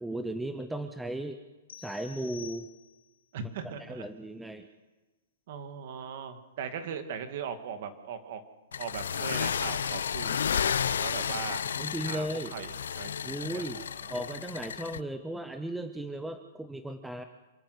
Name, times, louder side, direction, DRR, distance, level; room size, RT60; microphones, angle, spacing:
voice 1, 0.0-1.4 1.8-2.7 3.8-4.7 11.8-12.5 13.3-13.8 14.1-17.2, right 1 dB, 5° right, 8 dB, 0.6 m, -36 dB
sound 1, 1.7-3.2, left 8 dB, 70° left, 1.6 m, -49 dB
voice 2, 3.3-4.1 5.5-8.4 8.8-11.7 12.1-14.3, right 7 dB, 40° right, 8 dB, 2.1 m, -39 dB
sound 2, 8.7-15.0, left 8 dB, 90° left, 0.6 m, -32 dB
27.5 x 12.0 x 8.1 m, 1.2 s
hypercardioid pair, 175°, 0 cm